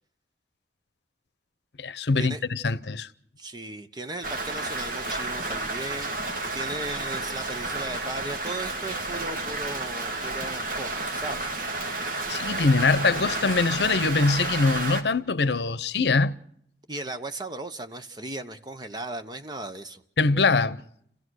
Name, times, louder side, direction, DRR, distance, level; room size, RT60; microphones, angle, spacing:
voice 1, 1.8-3.1 12.3-16.3 20.2-20.8, left 3 dB, 75° left, 0.8 m, -23 dB
voice 2, 3.4-11.5 16.9-20.0, right 2 dB, 25° right, 1.0 m, -37 dB
Rain, 4.2-15.0, right 2 dB, 50° right, 2.0 m, -31 dB
28.5 x 16.0 x 6.4 m
head